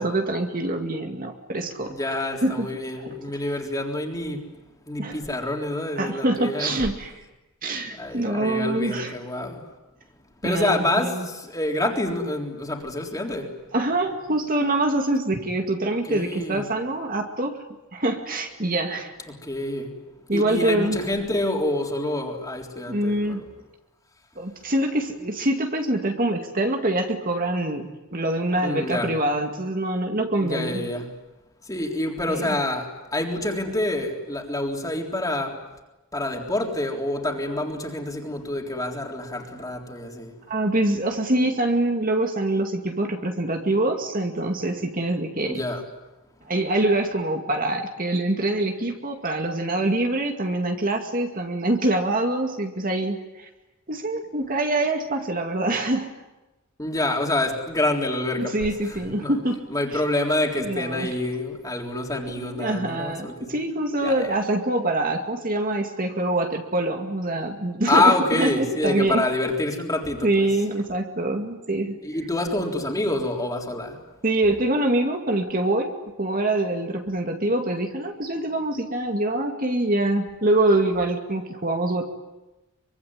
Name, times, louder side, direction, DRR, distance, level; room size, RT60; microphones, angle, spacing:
voice 1, 0.0-2.7 3.0-3.1 5.0-5.2 6.0-7.1 7.6-9.1 10.4-11.3 13.7-17.6 17.9-19.1 20.3-21.0 22.9-23.4 24.4-30.9 32.3-32.6 40.5-45.6 46.5-53.5 53.9-56.1 58.4-59.6 60.6-61.1 62.3-69.2 70.2-72.0 74.2-75.9 76.2-82.0, right 1 dB, 40° right, 4 dB, 2.2 m, -25 dB
voice 2, 1.9-4.5 4.9-6.8 8.0-9.6 10.4-13.5 16.0-16.7 19.3-20.0 20.3-23.4 28.6-29.1 30.4-31.1 31.7-35.6 36.1-40.3 45.5-45.8 56.8-59.4 59.7-63.6 64.0-64.4 67.9-70.5 72.0-74.0, left 1 dB, 15° left, 1 dB, 3.8 m, -27 dB
24.5 x 24.5 x 9.8 m, 1.0 s
head